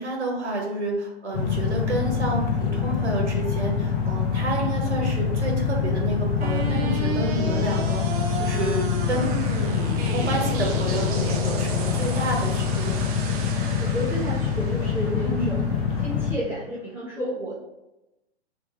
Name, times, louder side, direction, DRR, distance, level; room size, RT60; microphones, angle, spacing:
voice 1, 0.0-9.3 9.9-13.2 15.2-15.6, right 2 dB, 85° right, 0 dB, 1.0 m, -30 dB
sound 1, 1.3-16.3, left 6 dB, 35° left, 0.6 m, -25 dB
sound 2, 6.4-16.4, right 3 dB, 35° right, 0.5 m, -34 dB
voice 2, 13.8-17.5, equal, 5° right, -10 dB, 0.8 m, -31 dB
2.7 x 2.3 x 4.0 m, 0.97 s
figure-of-eight pair, 115°, 33 cm